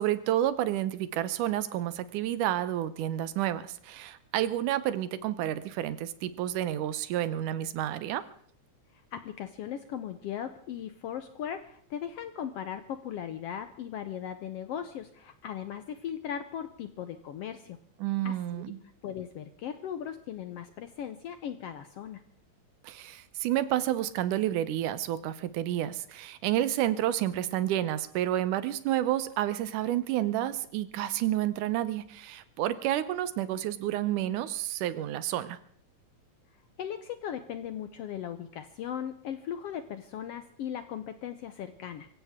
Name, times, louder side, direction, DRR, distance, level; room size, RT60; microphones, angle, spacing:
voice 1, 0.0-8.2 18.0-18.8 22.8-35.6, right 12 dB, 85° right, 14 dB, 2.4 m, -30 dB
voice 2, 8.9-17.8 18.2-18.6 19.0-22.2 36.8-42.1, left 9 dB, 75° left, 10 dB, 1.5 m, -38 dB
24.5 x 15.5 x 3.6 m, 0.62 s
omnidirectional pair, 3.6 m